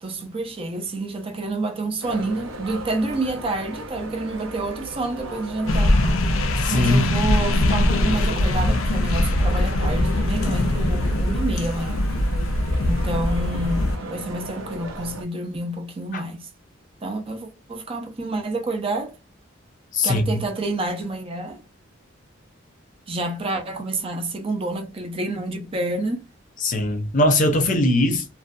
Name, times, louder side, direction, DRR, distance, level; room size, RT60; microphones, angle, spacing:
voice 1, 0.0-6.0 6.7-12.1 12.8-16.5 17.0-19.1 20.0-21.6 23.1-26.2, right 2 dB, 30° right, 0.4 m, -28 dB
sound 1, 2.0-15.2, right 1 dB, 85° right, 0.7 m, -36 dB
sound 2, 5.7-14.0, left 1 dB, 85° left, 0.4 m, -22 dB
voice 2, 6.6-7.2 16.1-16.2 19.9-20.5 26.6-28.3, left 1 dB, 40° left, 0.6 m, -21 dB
2.5 x 2.1 x 2.3 m
head